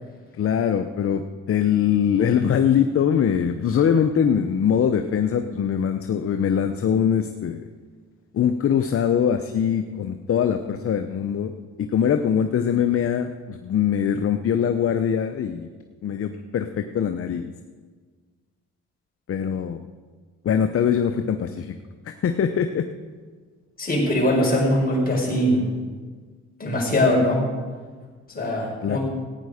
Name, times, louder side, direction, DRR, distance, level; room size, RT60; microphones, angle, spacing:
voice 1, 0.4-1.2 1.5-7.7 8.3-15.7 16.0-17.5 19.3-19.8 20.4-21.7 22.1-22.8 28.8-29.0, left 8 dB, 50° left, 8 dB, 0.8 m, -22 dB
voice 2, 23.8-25.6 26.6-27.4 28.3-29.0, left 1 dB, 30° left, -3 dB, 5.0 m, -21 dB
16.0 x 9.3 x 5.0 m, 1.5 s
cardioid pair, 90°, 30 cm